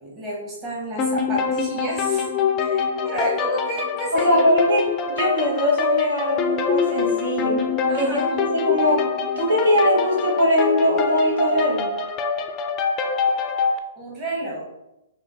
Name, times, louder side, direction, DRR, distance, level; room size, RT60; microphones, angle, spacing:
voice 1, 0.0-2.3 2.6-4.5 7.9-8.8 14.0-14.7, equal, 20° right, -5 dB, 1.2 m, -30 dB
sound 1, 1.0-13.8, left 5 dB, 25° left, 0.4 m, -24 dB
voice 2, 4.1-4.8 5.1-7.6 7.9-9.0 9.4-11.9, equal, 80° right, -2 dB, 1.2 m, -21 dB
5.2 x 2.4 x 2.6 m, 0.92 s
hypercardioid pair, 140°, 0 cm